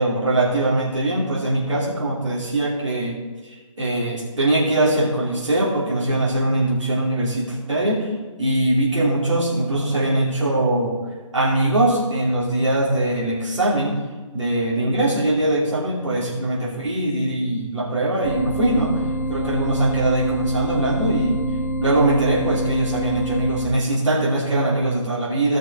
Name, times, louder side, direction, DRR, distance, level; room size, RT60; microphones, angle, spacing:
voice 1, 0.0-3.2 3.4-8.1 8.4-11.0 11.3-14.0 14.3-19.0 19.3-21.4 21.8-25.6, right 1 dB, 60° right, -6 dB, 2.9 m, -21 dB
sound 1, 18.2-23.7, equal, 35° left, 1.4 m, -26 dB
17.0 x 5.9 x 3.9 m, 1.3 s
figure-of-eight pair, 145°, 18 cm